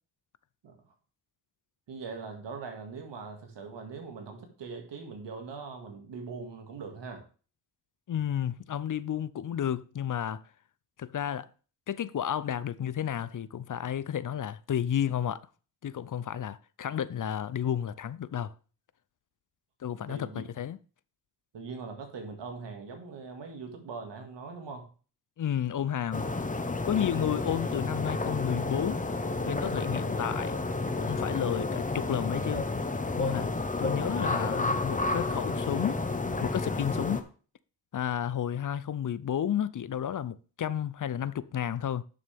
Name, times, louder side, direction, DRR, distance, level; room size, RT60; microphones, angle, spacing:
voice 1, 1.9-7.2 20.1-20.4 21.5-24.9, right 4 dB, 90° right, 2.2 m, -41 dB
voice 2, 8.1-10.4 11.0-11.5 11.9-15.4 15.8-18.5 19.8-20.8 25.4-26.3 26.9-29.0 29.5-30.5 31.0-32.7 33.2-33.5 33.8-36.0 36.4-37.2 37.9-42.0, left 9 dB, 50° left, 0.6 m, -32 dB
sound 1, 26.1-37.2, left 3 dB, 20° left, 1.0 m, -31 dB
11.0 x 6.6 x 3.5 m
cardioid pair, 85°, 41 cm